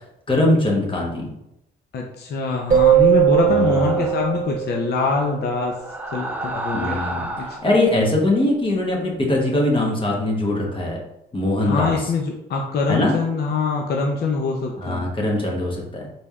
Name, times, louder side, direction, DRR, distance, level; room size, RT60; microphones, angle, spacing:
voice 1, 0.3-1.3 3.4-4.1 6.7-7.2 7.6-11.0 11.3-12.1 12.9-13.2 14.8-16.0, left 1 dB, 25° left, -2 dB, 1.0 m, -21 dB
voice 2, 1.9-5.7 6.1-7.5 11.6-15.1, left 4 dB, 55° left, 0 dB, 0.6 m, -24 dB
sound 1, 2.7-5.3, right 12 dB, 45° right, 0.8 m, -18 dB
sound 2, 3.2-4.4 5.7-7.8, right 2 dB, 10° right, 0.4 m, -31 dB
4.1 x 3.2 x 2.3 m, 0.83 s
cardioid pair, 90°, 20 cm